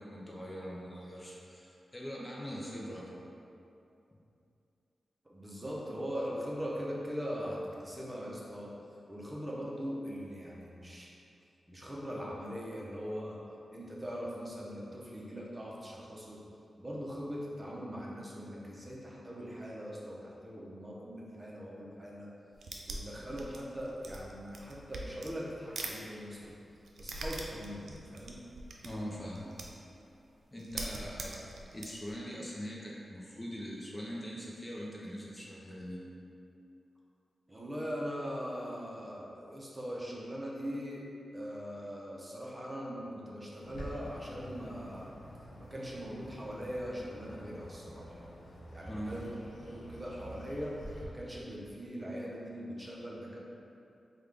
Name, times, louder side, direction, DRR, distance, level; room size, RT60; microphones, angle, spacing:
voice 1, 0.0-3.3 28.8-29.6 30.5-36.0 48.9-49.2, equal, 25° left, -4 dB, 0.5 m, -42 dB
voice 2, 5.2-8.7 9.1-11.1 11.7-13.4 13.7-16.4 16.8-22.3 22.9-26.5 27.0-28.4 37.5-41.1 41.3-45.2 45.6-48.3 48.7-49.3 49.6-53.4, equal, 20° right, -5 dB, 0.7 m, -41 dB
sound 1, 22.5-26.0 26.2-29.9 30.2-30.3 30.6-32.1, right 2 dB, 80° right, 0.3 m, -43 dB
Bird, 43.6-51.1, equal, 85° left, 0.5 m, -48 dB
3.5 x 2.3 x 3.4 m, 2.7 s
cardioid pair, 55°, 0 cm